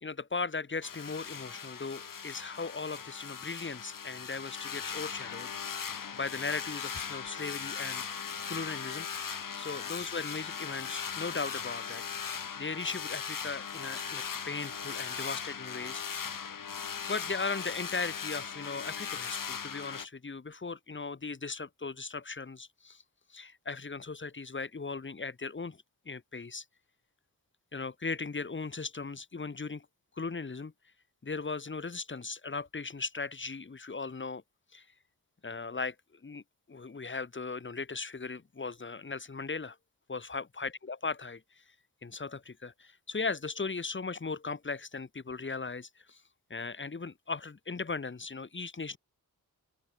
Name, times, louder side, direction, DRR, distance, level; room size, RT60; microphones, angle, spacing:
voice 1, 0.0-5.8 6.1-12.0 12.6-16.0 17.1-23.0 23.3-26.6 27.7-29.9 30.2-30.7 31.2-34.4 34.7-34.9 35.4-36.4 36.7-39.8 40.1-41.6 42.0-46.2 46.5-49.0, left 4 dB, 30° left, 2.2 m, -38 dB
sound 1, 0.8-20.1, left 6 dB, 60° left, 3.6 m, -39 dB
open air
wide cardioid pair, 120°, 36 cm